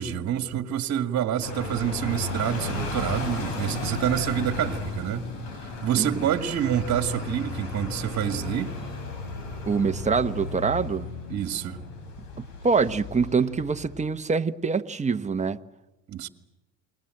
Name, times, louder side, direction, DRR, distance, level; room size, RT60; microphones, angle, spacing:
voice 1, 0.0-5.3 5.6-8.7 11.3-11.8 16.1-16.3, right 10 dB, 40° right, 2.0 m, -27 dB
sound 1, 1.4-14.0, left 3 dB, 75° left, 6.6 m, -34 dB
voice 2, 9.7-11.1 12.4-15.6, right 5 dB, 15° right, 1.1 m, -25 dB
29.0 x 22.0 x 7.8 m
hypercardioid pair, 80°, 42 cm